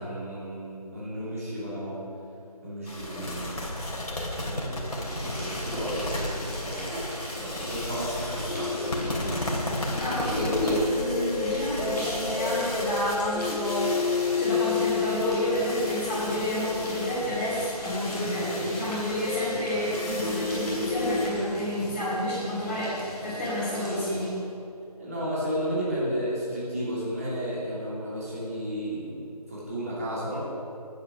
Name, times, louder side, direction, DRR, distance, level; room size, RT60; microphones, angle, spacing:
voice 1, 0.0-2.0 2.6-3.7 4.3-9.5 25.0-30.4, equal, 20° right, -8 dB, 2.9 m, -33 dB
sound 1, 2.9-21.3, left 1 dB, 60° left, 3.0 m, -35 dB
sound 2, 4.8-24.5, equal, ahead, 1.0 m, -43 dB
sound 3, 8.5-18.1 19.1-21.3, left 4 dB, 85° left, 1.1 m, -31 dB
voice 2, 10.0-13.9 14.4-24.3, left 1 dB, 20° left, -15 dB, 3.4 m, -29 dB
10.5 x 9.1 x 6.4 m, 2.6 s
figure-of-eight pair, 175°, 20 cm